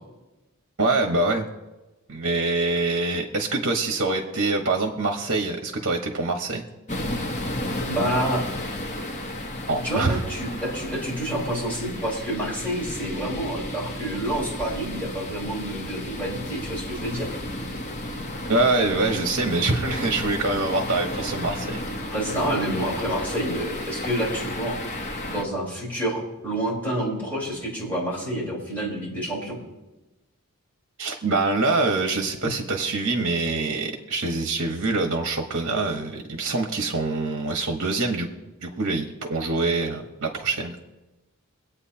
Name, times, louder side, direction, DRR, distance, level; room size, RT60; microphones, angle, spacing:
voice 1, 0.8-1.5 2.1-6.6 9.7-10.2 18.5-21.8 31.0-38.3 38.6-40.8, right 3 dB, 55° right, 3 dB, 1.3 m, -25 dB
sound 1, 6.9-25.4, left 1 dB, 35° left, 1.1 m, -33 dB
voice 2, 7.9-8.4 9.8-17.3 22.1-24.8 25.3-29.6, right 1 dB, 10° left, -7 dB, 4.6 m, -28 dB
24.5 x 8.7 x 2.9 m, 1.1 s
head